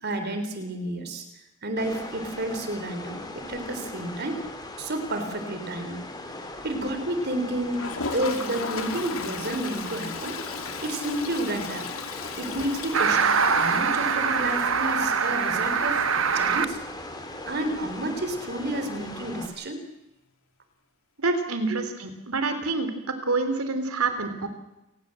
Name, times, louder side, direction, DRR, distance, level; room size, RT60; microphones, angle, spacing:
voice 1, 0.0-1.3 1.6-4.4 4.8-6.0 6.6-10.4 10.8-11.9 12.4-16.8 17.5-19.8 21.7-21.8, right 1 dB, 50° right, 8 dB, 3.5 m, -31 dB
sound 1, 1.8-19.5, left 1 dB, 20° left, 3.4 m, -39 dB
Toilet flush, 7.7-14.4 14.7-14.8 15.0-15.1 15.4-15.5 18.0-18.1 19.4-19.5, left 5 dB, 75° left, 2.7 m, -36 dB
sound 2, 12.9-16.6, right 6 dB, 65° right, 1.5 m, -23 dB
voice 2, 21.2-22.9 23.2-24.5, right 3 dB, 85° right, 8 dB, 3.5 m, -27 dB
28.0 x 20.0 x 7.7 m, 0.91 s
head